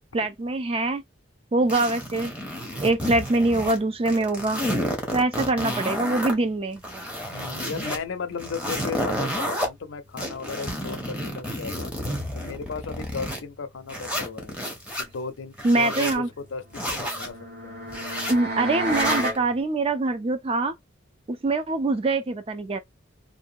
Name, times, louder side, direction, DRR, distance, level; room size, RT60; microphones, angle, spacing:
voice 1, 0.1-1.0 1.5-2.3 2.8-4.6 5.1-6.8 15.6-16.3 18.3-20.7 21.3-22.8, right 2 dB, 30° right, 0.5 m, -24 dB
sound 1, 1.7-3.8 4.1-6.3 6.8-8.0 8.4-9.7 10.2-13.4 13.9-15.0 15.5-16.2 16.7-17.3 17.9-18.3 18.8-19.4, equal, 5° right, 0.8 m, -30 dB
voice 2, 5.3-6.0 7.3-12.0 12.3-14.6 15.0-17.4 17.6-17.8, left 5 dB, 70° left, 0.5 m, -35 dB
sound 2, 16.8-19.4, right 1 dB, 55° right, 1.1 m, -30 dB
2.7 x 2.3 x 2.6 m
head